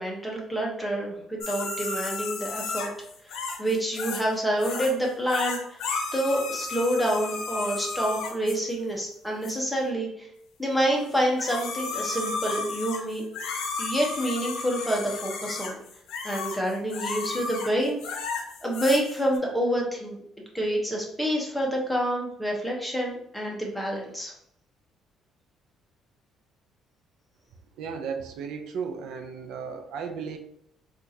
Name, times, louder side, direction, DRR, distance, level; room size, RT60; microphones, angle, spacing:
voice 1, 0.0-2.9 3.6-5.8 6.1-10.3 10.6-13.2 13.8-15.8 16.2-18.2 18.6-20.2 20.5-24.3, equal, ahead, -2 dB, 0.8 m, -27 dB
sound 1, 1.4-4.3 4.6-4.9 5.3-8.6 9.4-9.5 11.1-19.4, left 4 dB, 80° left, 0.6 m, -33 dB
voice 2, 27.8-30.4, right 6 dB, 75° right, 5 dB, 0.5 m, -35 dB
4.5 x 2.4 x 2.7 m, 0.73 s
cardioid pair, 150°, 0 cm